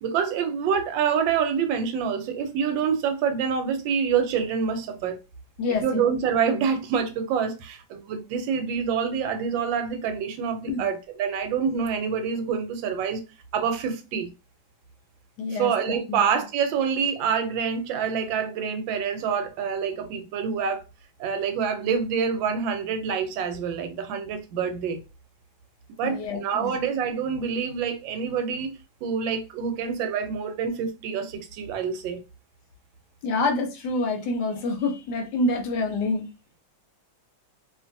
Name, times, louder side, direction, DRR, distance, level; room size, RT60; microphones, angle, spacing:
voice 1, 0.0-5.2 5.7-13.2 13.5-14.3 15.5-20.8 21.2-25.0 26.0-32.2, right 6 dB, 85° right, 1.3 m, -26 dB
voice 2, 5.6-6.0 10.7-10.8 15.4-16.2 26.0-26.7 33.2-36.3, left 2 dB, 70° left, 1.1 m, -27 dB
2.8 x 2.5 x 2.5 m
omnidirectional pair, 2.1 m